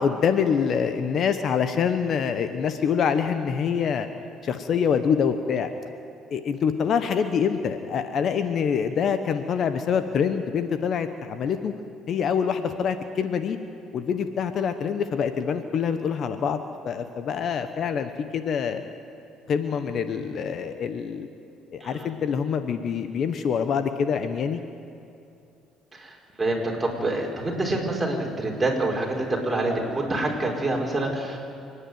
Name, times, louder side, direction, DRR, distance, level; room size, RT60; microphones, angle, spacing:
voice 1, 0.0-4.1 4.4-5.7 6.3-11.7 12.1-13.6 13.9-16.6 16.8-18.8 19.5-21.3 21.7-24.6, left 7 dB, 55° left, 9 dB, 1.1 m, -25 dB
voice 2, 21.8-22.1 25.9-31.5, right 2 dB, 15° right, -1 dB, 4.7 m, -27 dB
28.0 x 10.0 x 9.4 m, 2.6 s
cardioid pair, 90°, 0 cm